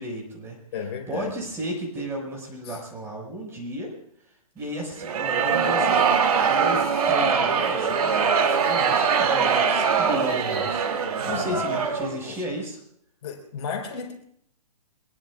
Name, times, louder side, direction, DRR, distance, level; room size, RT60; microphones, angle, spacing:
voice 1, 0.0-0.6 1.1-3.9 4.5-6.0 6.5-10.9 11.3-12.8, right 1 dB, 10° right, -1 dB, 5.9 m, -33 dB
voice 2, 0.7-1.3 2.7-2.8 11.2-11.8 12.2-12.4 13.2-14.1, left 6 dB, 40° left, 2 dB, 4.7 m, -33 dB
sound 1, 5.0-12.2, right 6 dB, 65° right, 2.8 m, -22 dB
24.5 x 21.5 x 2.5 m, 0.69 s
hypercardioid pair, 140°, 20 cm